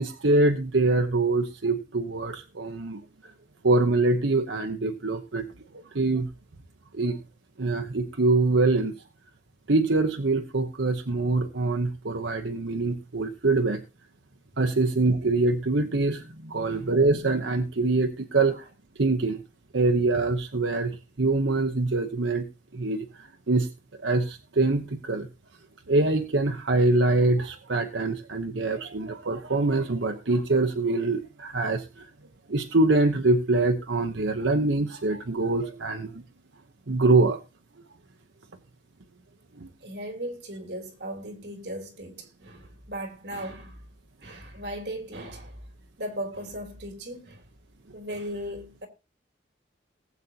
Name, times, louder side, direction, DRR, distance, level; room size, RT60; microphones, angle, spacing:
voice 1, 0.0-3.0 3.6-5.5 5.7-6.3 6.9-7.2 7.6-8.9 9.7-13.8 14.6-18.7 19.0-19.4 19.7-22.5 22.7-23.7 24.0-25.3 25.9-32.1 32.5-36.2 36.9-37.4 39.6-39.7, right 2 dB, 90° right, 1.0 m, -24 dB
voice 2, 39.8-43.8 44.2-45.6 46.0-47.4 47.9-48.9, equal, 65° right, 3.4 m, -37 dB
19.0 x 8.3 x 2.9 m
head